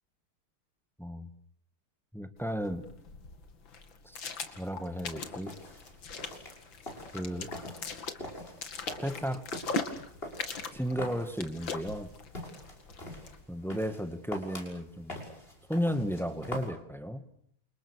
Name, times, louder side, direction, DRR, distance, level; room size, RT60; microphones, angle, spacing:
voice 1, 1.0-1.3 2.1-2.8 4.0-4.2 4.6-5.5 7.1-7.9 9.0-9.4 10.7-12.1 13.5-15.2 15.7-17.2, equal, ahead, 9 dB, 1.9 m, -34 dB
sound 1, 2.4-13.4, left 4 dB, 65° left, 3.0 m, -41 dB
sound 2, 5.3-16.7, left 1 dB, 25° left, 6.6 m, -45 dB
29.5 x 27.5 x 6.6 m, 0.64 s
omnidirectional pair, 2.3 m